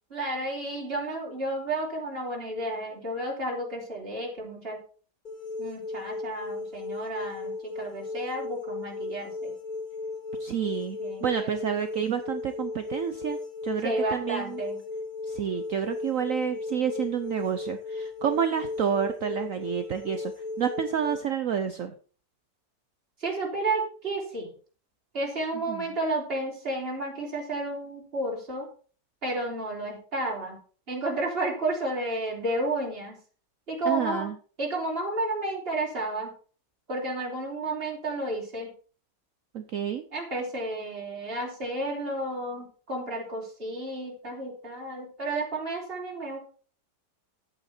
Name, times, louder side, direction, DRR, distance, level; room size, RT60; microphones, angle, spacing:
voice 1, 0.1-4.8 5.6-9.5 11.0-11.6 13.8-14.8 23.2-24.5 25.1-28.7 29.2-30.6 30.9-33.2 33.7-34.3 34.6-36.3 36.9-38.7 40.1-46.4, right 2 dB, 30° right, -3 dB, 3.8 m, -32 dB
sound 1, 5.2-21.2, left 3 dB, 25° left, 3.0 m, -36 dB
voice 2, 10.4-14.6 15.3-21.9 25.7-25.8 33.8-34.3 39.5-40.0, right 8 dB, 60° right, 9 dB, 1.0 m, -29 dB
11.0 x 8.9 x 4.4 m, 0.40 s
omnidirectional pair, 1.9 m